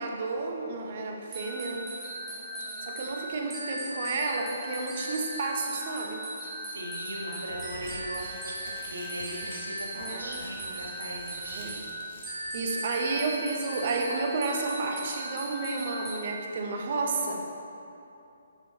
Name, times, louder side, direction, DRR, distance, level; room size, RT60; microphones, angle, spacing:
voice 1, 0.0-1.9 2.9-6.2 10.0-10.4 11.5-11.8 12.5-17.4, right 3 dB, 45° right, 1 dB, 1.3 m, -31 dB
sound 1, 1.3-16.2, right 1 dB, 15° right, 1.9 m, -38 dB
voice 2, 2.3-3.0 6.4-12.0, right 1 dB, 70° right, -2 dB, 1.8 m, -40 dB
sound 2, 7.4-12.9, left 2 dB, 50° left, 2.2 m, -48 dB
9.8 x 7.3 x 4.1 m, 2.8 s
figure-of-eight pair, 135°, 0 cm